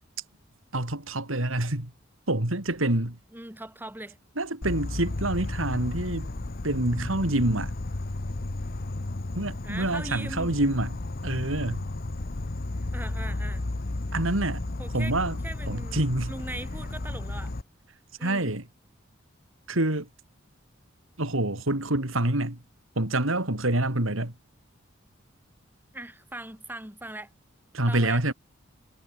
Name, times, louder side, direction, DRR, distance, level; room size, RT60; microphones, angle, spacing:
voice 1, 0.7-1.9 2.3-3.2 4.4-6.3 6.6-7.7 9.4-11.9 14.1-14.6 14.9-15.4 15.7-16.3 18.2-18.6 19.7-20.1 21.2-22.6 23.0-24.3 27.7-28.3, right 1 dB, 85° right, 3.6 m, -27 dB
voice 2, 3.3-4.2 9.6-10.5 12.9-13.7 14.8-15.1 15.4-16.0 16.3-17.5 18.2-18.6 25.9-27.3 27.9-28.3, right 1 dB, 10° right, 4.6 m, -40 dB
Insect, 4.6-17.6, left 2 dB, 50° left, 1.0 m, -33 dB
head